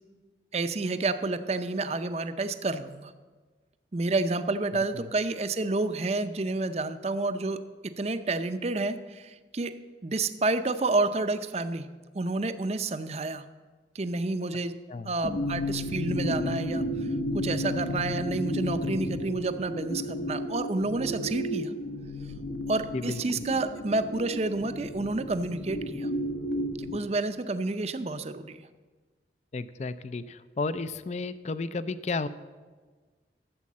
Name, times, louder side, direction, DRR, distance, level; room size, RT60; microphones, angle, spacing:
voice 1, 0.5-3.1 3.9-9.7 10.0-11.9 12.1-13.4 13.9-14.8 15.1-16.8 17.3-21.7 22.7-26.1 26.9-28.6, right 2 dB, 35° right, 11 dB, 0.6 m, -29 dB
voice 2, 4.7-5.1 14.9-15.1 22.9-23.4 29.5-32.3, left 3 dB, 40° left, 14 dB, 0.4 m, -33 dB
sound 1, 15.2-27.0, equal, 70° left, 1.1 m, -33 dB
12.5 x 7.6 x 7.3 m, 1.4 s
head